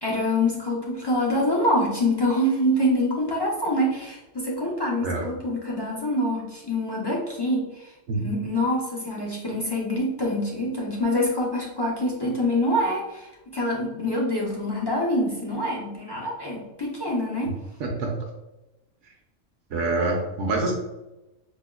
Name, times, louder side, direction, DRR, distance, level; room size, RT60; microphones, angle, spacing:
voice 1, 0.0-7.9 8.2-17.5, left 1 dB, 40° left, -4 dB, 0.3 m, -25 dB
voice 2, 17.8-18.1 19.7-20.7, right 2 dB, 70° right, 0 dB, 0.9 m, -25 dB
4.9 x 2.2 x 2.3 m, 0.99 s
omnidirectional pair, 1.3 m